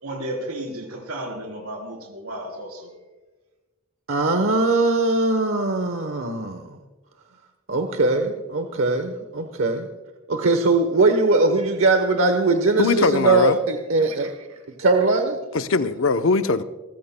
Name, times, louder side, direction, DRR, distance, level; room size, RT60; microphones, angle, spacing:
voice 1, 0.0-2.9, right 1 dB, 90° right, 2 dB, 3.7 m, -33 dB
voice 2, 4.1-6.8 7.7-9.9 10.3-14.4 14.8-15.4, right 3 dB, 65° right, 6 dB, 1.0 m, -21 dB
voice 3, 12.8-13.6 15.5-16.6, left 3 dB, 65° left, 10 dB, 0.7 m, -20 dB
27.0 x 15.0 x 2.2 m, 1.2 s
head